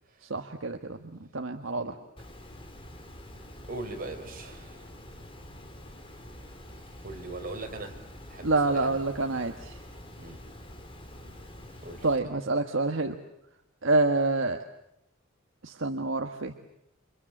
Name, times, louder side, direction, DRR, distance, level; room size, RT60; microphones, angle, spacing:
voice 1, 0.2-1.9 8.4-9.8 12.0-13.2 13.8-14.6 15.6-16.5, right 2 dB, 70° right, 5 dB, 1.6 m, -27 dB
Water, 2.2-12.2, left 1 dB, 25° left, 4.0 m, -46 dB
voice 2, 3.7-4.9 7.0-8.0 8.3-9.0 10.2-10.4 11.8-12.1, right 2 dB, 45° right, 3 dB, 5.1 m, -40 dB
30.0 x 26.5 x 7.5 m, 0.81 s
head